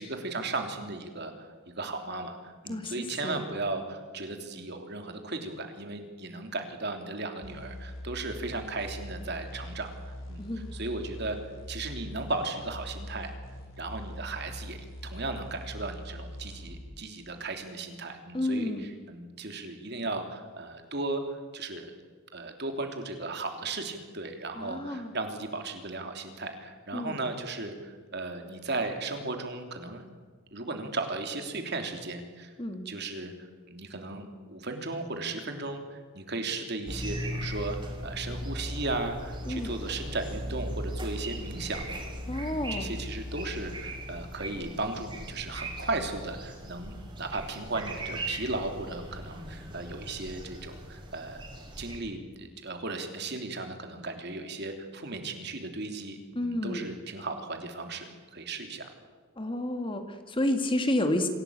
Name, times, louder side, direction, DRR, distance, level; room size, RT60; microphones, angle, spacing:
voice 1, 0.0-1.5 1.8-9.9 10.3-11.4 11.7-13.3 13.8-14.8 15.0-21.9 22.3-30.0 30.5-32.5 32.8-37.8 38.0-41.8 42.4-51.4 51.8-58.9, right 2 dB, 50° right, 5 dB, 3.2 m, -36 dB
sound 1, 7.4-16.9, left 1 dB, 65° left, 6.9 m, -42 dB
voice 2, 10.4-10.7 18.3-18.9 24.6-25.1 26.9-27.2 32.6-32.9 39.5-39.7 42.3-42.9 56.4-56.9 59.4-61.3, left 1 dB, 25° left, 7 dB, 1.9 m, -30 dB
sound 2, 36.9-52.0, equal, 25° right, 5.2 m, -38 dB
26.5 x 17.5 x 8.8 m, 1.5 s
head